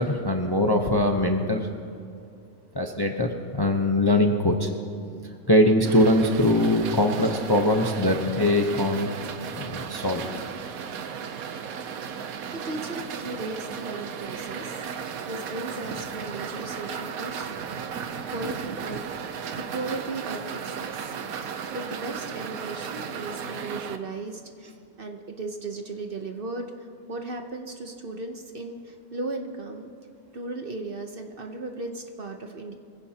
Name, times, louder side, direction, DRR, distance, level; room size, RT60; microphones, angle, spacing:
voice 1, 0.0-1.7 2.7-4.7 5.5-9.1 9.5-10.2, left 1 dB, 20° left, 3 dB, 0.7 m, -22 dB
sound 1, 5.8-24.0, right 7 dB, 85° right, 1.2 m, -35 dB
voice 2, 12.6-17.7 18.3-21.1 21.4-24.7 25.0-26.7 27.1-29.9 30.3-32.7, right 2 dB, 45° right, 4 dB, 1.0 m, -36 dB
24.0 x 15.5 x 2.9 m, 2.5 s
omnidirectional pair, 1.5 m